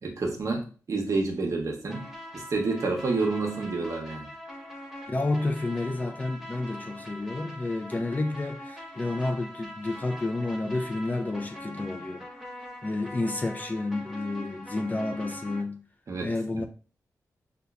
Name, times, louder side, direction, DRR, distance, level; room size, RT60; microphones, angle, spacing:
voice 1, 0.0-2.1 2.3-4.2 16.1-16.3, right 3 dB, 55° right, 0.8 m, -29 dB
sound 1, 1.9-15.6, left 1 dB, 5° right, 0.9 m, -42 dB
voice 2, 5.1-12.3 12.8-15.8 16.2-16.6, left 2 dB, 25° left, 0.4 m, -30 dB
5.2 x 2.3 x 2.3 m
wide cardioid pair, 100°, 6 cm